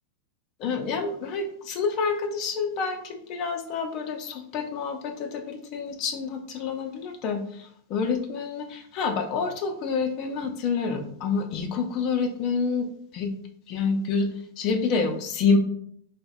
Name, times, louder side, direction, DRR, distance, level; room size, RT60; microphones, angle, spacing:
voice 1, 0.6-12.9 13.1-13.3 13.7-14.3 14.6-15.6, left 5 dB, 35° left, 4 dB, 0.4 m, -28 dB
3.5 x 2.0 x 3.4 m, 0.66 s
supercardioid pair, 165°, 0 cm